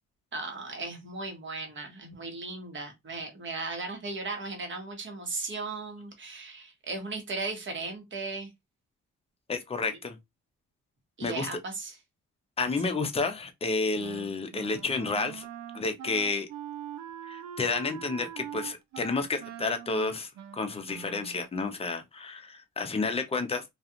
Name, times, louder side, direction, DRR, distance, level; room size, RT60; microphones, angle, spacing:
voice 1, 0.3-8.5 11.2-12.0, right 3 dB, 40° right, 1.1 m, -36 dB
voice 2, 9.5-10.2 11.2-11.5 12.6-15.5 15.7-16.5 17.2-23.6, left 3 dB, 20° left, 0.6 m, -31 dB
Wind instrument woodwind instrument, 14.0-21.5, right 9 dB, 65° right, 0.5 m, -43 dB
2.4 x 2.4 x 2.8 m
cardioid pair, 90°, 30 cm